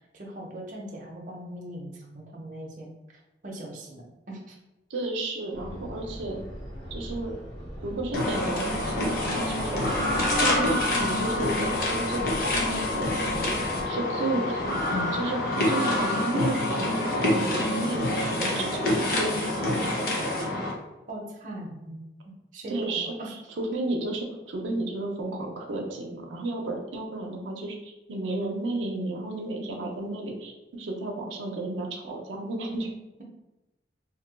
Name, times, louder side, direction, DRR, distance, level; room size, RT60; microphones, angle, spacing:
voice 1, 0.1-4.6 21.1-23.3, right 1 dB, 45° right, -2 dB, 0.6 m, -40 dB
voice 2, 4.9-6.4 6.9-7.4 7.8-10.0 10.4-13.5 13.9-19.3 19.6-20.2 22.7-23.1 23.6-32.9, right 2 dB, 85° right, 1 dB, 0.6 m, -33 dB
sound 1, 5.5-13.9, equal, 80° left, 1.1 m, -40 dB
sound 2, 8.1-20.7, left 1 dB, 50° left, 0.7 m, -26 dB
sound 3, 9.3-11.9 14.1-14.8, equal, 15° left, 0.3 m, -42 dB
2.7 x 2.2 x 3.8 m, 0.99 s
head